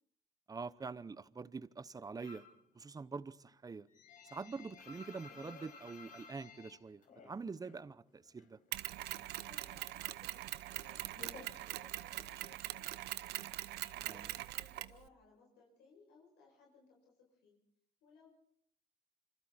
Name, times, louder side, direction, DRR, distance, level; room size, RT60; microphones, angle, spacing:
voice 1, 0.5-2.4 2.7-3.9 4.3-8.6 14.0-14.3, right 4 dB, 20° right, 0.8 m, -45 dB
sound 1, 2.2-2.6 3.0-7.8 8.1-9.2 9.4-12.3, left 4 dB, 50° left, 4.9 m, -56 dB
Mechanisms, 8.7-15.0, right 15 dB, 75° right, 0.9 m, -42 dB
voice 2, 9.3-13.3 13.9-17.6 18.0-18.3, left 4 dB, 85° left, 7.3 m, -64 dB
27.0 x 26.0 x 4.4 m
cardioid pair, 110°, 17 cm